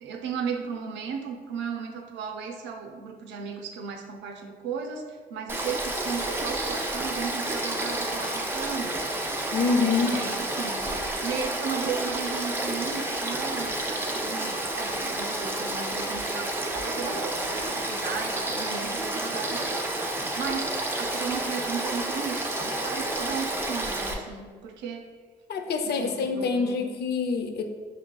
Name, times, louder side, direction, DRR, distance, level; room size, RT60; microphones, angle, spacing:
voice 1, 0.0-9.2 9.8-19.9 20.4-25.1 25.8-26.8, right 6 dB, 85° right, 4 dB, 0.5 m, -35 dB
Frog / Stream, 5.5-24.1, right 1 dB, 10° right, 0.5 m, -30 dB
voice 2, 9.5-10.2 25.5-27.6, left 4 dB, 65° left, 6 dB, 0.5 m, -26 dB
5.2 x 3.2 x 2.2 m, 1.5 s
cardioid pair, 80°, 18 cm